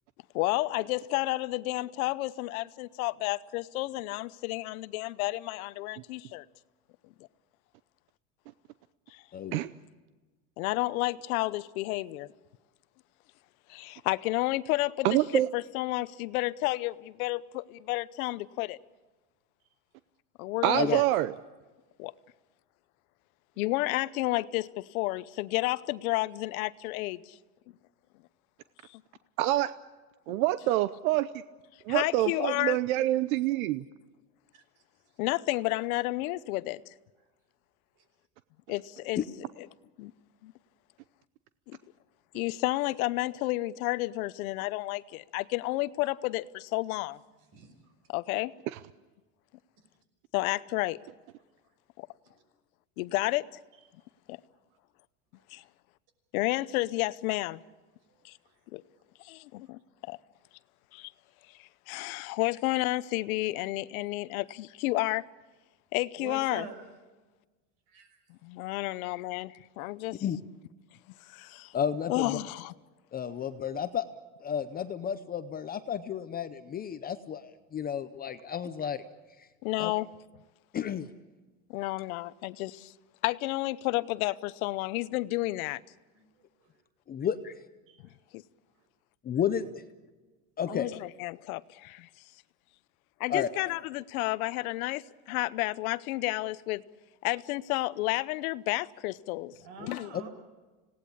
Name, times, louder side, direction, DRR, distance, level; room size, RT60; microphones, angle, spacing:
voice 1, 0.3-6.4 9.1-9.2 10.6-12.3 13.7-18.8 20.4-21.0 22.0-22.1 23.6-27.4 28.9-29.0 31.9-32.8 35.2-36.9 38.7-39.2 39.6-39.7 40.0-40.1 40.4-40.5 41.7-41.8 42.3-47.2 48.1-48.5 50.3-51.0 52.0-52.1 53.0-53.5 54.3-54.4 55.5-55.6 56.3-57.6 58.2-58.3 58.7-58.8 59.2-60.2 60.9-61.1 61.6-65.2 65.9-66.7 68.3-70.2 71.3-71.7 72.1-72.7 79.6-80.1 81.7-82.9 83.2-85.8 88.3-88.4 90.7-92.1 93.2-96.8 97.2-99.5 99.8-100.3, left 19 dB, 75° left, 0.9 m, -31 dB
voice 2, 15.0-15.5 20.6-21.3 29.4-29.7 30.3-31.3 31.9-33.8, right 15 dB, 75° right, 0.8 m, -26 dB
voice 3, 66.2-66.7 67.9-68.2 69.8-69.9 86.1-86.7 87.9-88.1 99.6-100.3, right 5 dB, 55° right, 6.0 m, -46 dB
voice 4, 71.7-72.4 73.1-74.1 74.4-79.0 79.8-79.9 80.7-81.1 87.1-87.5 89.2-89.6 90.6-90.9 93.3-93.5 100.1-100.2, left 8 dB, 20° left, 0.7 m, -32 dB
26.5 x 18.0 x 8.6 m
supercardioid pair, 150°, 42 cm